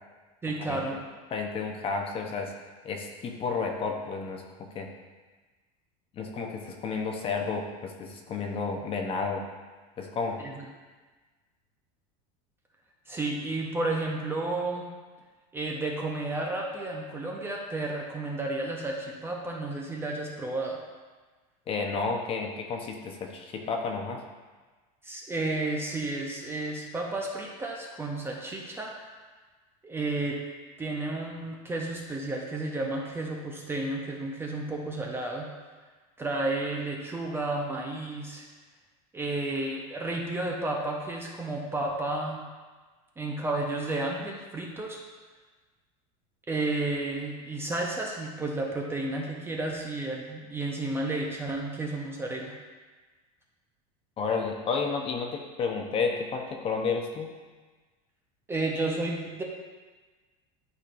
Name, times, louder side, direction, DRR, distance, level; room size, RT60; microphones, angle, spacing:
voice 1, 0.4-1.0 10.4-10.7 13.1-14.9 15.5-20.8 25.0-28.9 29.8-30.4 30.8-35.5 36.2-38.4 39.1-42.4 43.2-45.0 46.5-52.5 58.5-59.4, right 2 dB, 10° right, -1 dB, 0.6 m, -32 dB
voice 2, 1.3-2.5 2.8-4.4 4.7-4.9 6.2-9.4 10.0-10.4 21.7-24.2 54.2-57.3, left 4 dB, 30° left, 2 dB, 0.8 m, -31 dB
11.5 x 4.2 x 2.6 m, 1.3 s
supercardioid pair, 145°, 19 cm